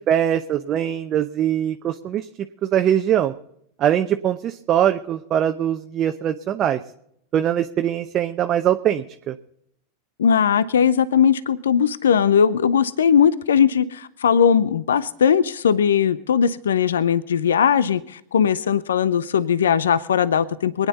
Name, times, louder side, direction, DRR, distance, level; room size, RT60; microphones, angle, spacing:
voice 1, 0.1-2.3 2.6-3.3 3.8-6.8 7.3-9.3, right 10 dB, 40° right, 7 dB, 0.7 m, -22 dB
voice 2, 10.2-20.9, left 7 dB, 80° left, 17 dB, 0.6 m, -19 dB
23.5 x 9.7 x 4.1 m, 0.75 s
hypercardioid pair, 90°, 0 cm